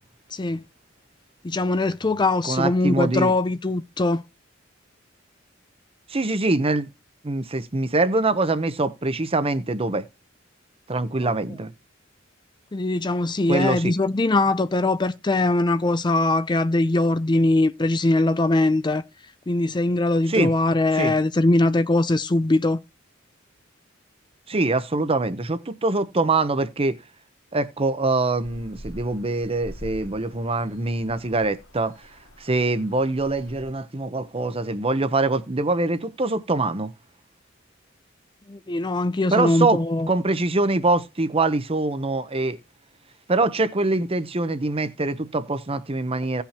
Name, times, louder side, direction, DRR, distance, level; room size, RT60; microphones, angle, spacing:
voice 1, 0.3-0.6 1.4-4.2 11.2-11.3 12.7-19.0 19.5-22.8 38.5-40.1, left 2 dB, 20° left, 0.5 m, -21 dB
voice 2, 2.4-3.3 6.1-6.9 7.2-10.0 10.9-11.7 13.5-13.9 20.3-20.5 20.9-21.1 24.5-27.0 27.5-31.9 32.4-36.9 39.3-39.8 40.1-42.6 43.3-46.4, right 2 dB, 30° right, 0.8 m, -24 dB
sound 1, 28.4-33.7, equal, 75° left, 2.0 m, -44 dB
17.0 x 5.7 x 2.9 m
head